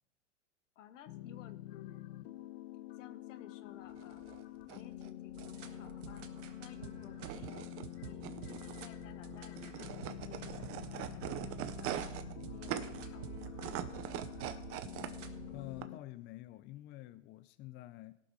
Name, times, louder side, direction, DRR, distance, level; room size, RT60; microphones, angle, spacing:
voice 1, 0.7-2.1 2.9-4.2 4.7-6.3 6.6-7.7 8.0-12.1 12.5-14.2, left 10 dB, 75° left, 1.2 m, -57 dB
sound 1, 1.1-16.0, left 15 dB, 55° left, 0.8 m, -47 dB
sound 2, 3.9-15.8, right 11 dB, 35° right, 0.8 m, -44 dB
sound 3, 5.3-15.5, right 8 dB, 90° right, 1.3 m, -49 dB
voice 2, 15.5-18.1, left 16 dB, 30° left, 0.5 m, -48 dB
17.5 x 6.1 x 4.7 m
hypercardioid pair, 115°, 37 cm